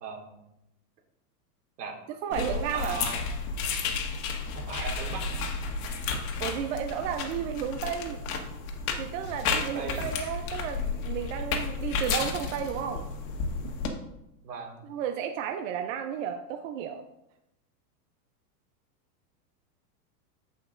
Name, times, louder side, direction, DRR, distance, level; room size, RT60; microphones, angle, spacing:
voice 1, 0.0-0.3 1.8-2.0 2.7-3.2 4.6-5.5 9.7-10.0 14.4-14.8, right 5 dB, 85° right, 2 dB, 2.2 m, -38 dB
voice 2, 2.2-3.0 6.4-8.2 9.0-13.1 14.9-17.0, right 8 dB, 55° right, 5 dB, 0.7 m, -33 dB
sound 1, 2.3-13.9, left 5 dB, 60° left, 1.5 m, -32 dB
14.0 x 5.2 x 2.6 m, 0.87 s
supercardioid pair, 140°, 47 cm